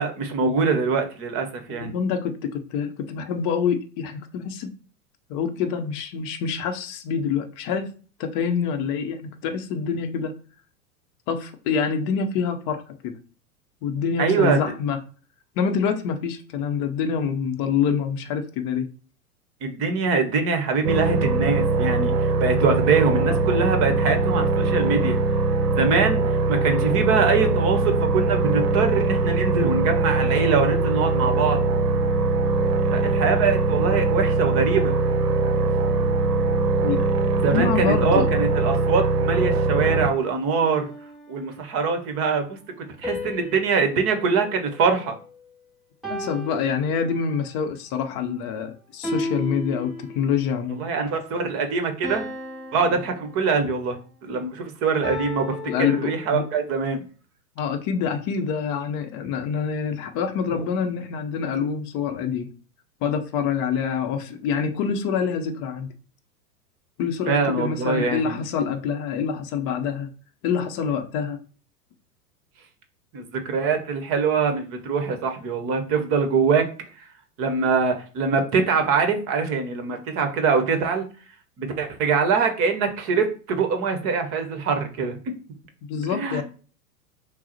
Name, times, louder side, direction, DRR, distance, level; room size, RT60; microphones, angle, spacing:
voice 1, 0.0-1.9 14.2-14.6 19.6-25.2 25.7-31.6 32.9-34.9 37.4-40.9 41.3-45.1 50.7-52.2 52.7-54.0 54.2-57.0 60.5-60.6 67.3-68.4 73.1-76.7 77.4-81.1 81.6-85.3 86.1-86.4, right 5 dB, 30° right, 0.9 m, -23 dB
voice 2, 1.7-4.7 5.3-7.9 8.2-10.3 11.3-13.2 13.8-15.0 15.6-18.9 36.8-37.0 37.5-38.3 46.1-50.8 55.7-56.4 57.6-62.5 63.0-65.9 67.0-70.1 70.4-71.4 85.9-86.4, left 6 dB, 30° left, 0.7 m, -26 dB
sound 1, 20.8-40.1, right 3 dB, 80° right, 0.7 m, -22 dB
sound 2, 40.6-41.8 43.0-45.5 46.0-47.5 49.0-50.5 52.0-53.9 55.0-56.7, left 1 dB, ahead, 0.3 m, -35 dB
6.0 x 2.0 x 4.2 m
figure-of-eight pair, 95°, 47 cm